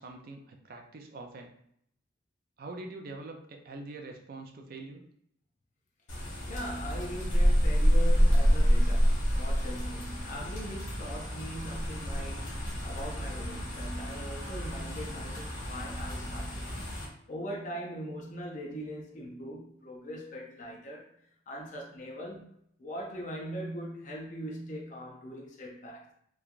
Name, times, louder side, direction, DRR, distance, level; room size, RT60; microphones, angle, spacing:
voice 1, 0.0-1.5 2.6-5.0, right 2 dB, 50° right, 0.4 m, -44 dB
sound 1, 6.1-17.0, equal, 80° left, 1.1 m, -28 dB
voice 2, 6.5-16.7 17.3-21.1 21.5-22.5 22.8-26.1, equal, 40° left, 0.5 m, -41 dB
3.0 x 2.3 x 2.4 m
head